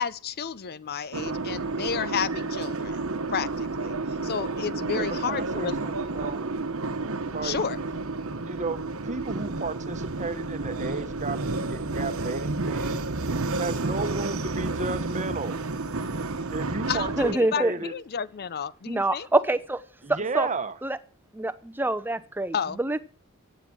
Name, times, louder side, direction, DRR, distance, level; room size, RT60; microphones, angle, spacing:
voice 1, 0.0-3.0 3.3-4.0 4.2-5.8 7.4-7.8 16.9-19.3 22.5-22.8, left 7 dB, 45° left, 0.5 m, -31 dB
sound 1, 1.1-17.3, right 3 dB, 65° right, 1.1 m, -31 dB
voice 2, 4.9-6.4 7.3-7.6 8.4-13.0 13.6-15.6 16.5-17.9 20.0-20.8, right 3 dB, 35° right, 1.1 m, -33 dB
voice 3, 17.2-17.7 18.9-19.8 20.1-20.5 20.8-21.0 21.3-23.0, right 2 dB, 10° right, 0.8 m, -26 dB
15.0 x 9.1 x 6.1 m
head